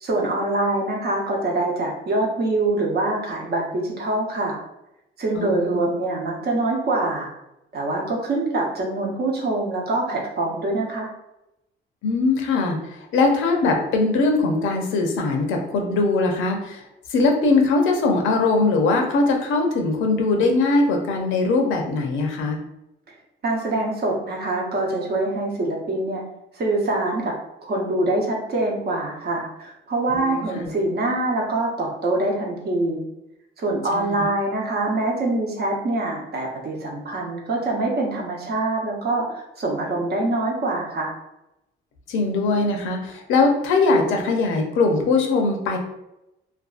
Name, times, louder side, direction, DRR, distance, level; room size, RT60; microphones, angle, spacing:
voice 1, 0.0-4.6 5.2-7.3 7.7-11.1 23.4-26.2 26.5-27.3 27.6-33.0 33.6-41.1, right 2 dB, 55° right, -1 dB, 0.8 m, -24 dB
voice 2, 5.4-5.8 12.0-12.8 13.1-16.8 17.1-22.6 30.1-30.7 33.9-34.2 42.1-45.8, left 3 dB, 80° left, 2 dB, 0.6 m, -21 dB
2.5 x 2.3 x 2.4 m, 0.88 s
cardioid pair, 90°, 20 cm